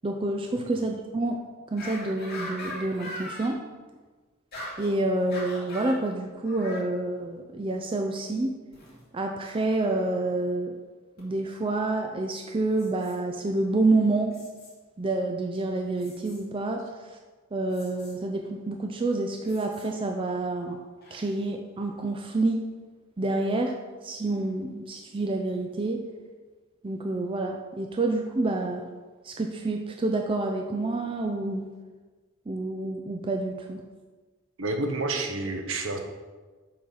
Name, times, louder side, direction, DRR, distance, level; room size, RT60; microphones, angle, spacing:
voice 1, 0.0-1.4 1.7-3.6 4.8-8.5 9.1-10.7 11.2-14.4 15.0-17.2 17.5-20.8 21.1-22.7 23.2-23.7 24.0-26.0 26.8-28.9 29.2-31.7 32.5-33.8, right 2 dB, 25° right, 3 dB, 0.4 m, -28 dB
sound 1, 1.8-3.5 4.5-4.9 5.3-6.0 6.4-6.9 8.7-9.0 11.2-11.3 12.7-13.2 14.3-14.7 16.0-16.4 17.7-18.1 19.4-19.9 21.0-21.2, left 1 dB, 45° left, 2.5 m, -40 dB
voice 2, 34.6-36.0, right 2 dB, 65° right, 5 dB, 0.9 m, -29 dB
7.5 x 3.9 x 5.6 m, 1.3 s
head